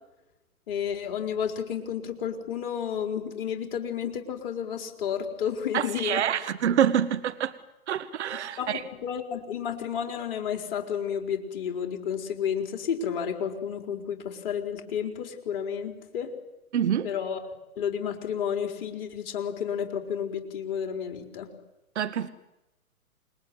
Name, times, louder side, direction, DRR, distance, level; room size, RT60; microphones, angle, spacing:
voice 1, 0.7-6.2 8.6-16.3 17.0-17.4 17.8-21.5, left 8 dB, 40° left, 4.6 m, -31 dB
voice 2, 5.7-7.5 7.9-8.8 16.7-17.1 21.9-22.3, right 9 dB, 50° right, 1.5 m, -26 dB
29.0 x 21.0 x 9.6 m
figure-of-eight pair, 120°, 43 cm